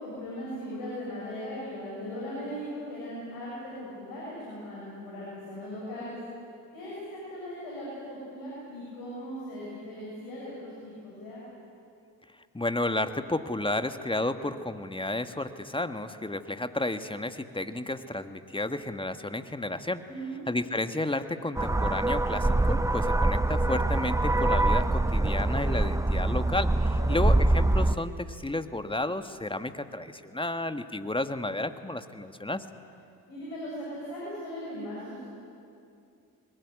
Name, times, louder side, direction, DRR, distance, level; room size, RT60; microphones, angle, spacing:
voice 1, 0.0-6.1 6.7-11.4 20.0-20.4 26.8-27.1 33.3-35.3, equal, 75° left, -6 dB, 7.2 m, -38 dB
voice 2, 12.5-20.0 20.5-32.6, left 2 dB, 10° left, 9 dB, 1.5 m, -32 dB
sound 1, 21.6-27.9, right 2 dB, 5° right, 0.8 m, -24 dB
20.5 x 20.5 x 9.5 m, 2.5 s
hypercardioid pair, 40°, 47 cm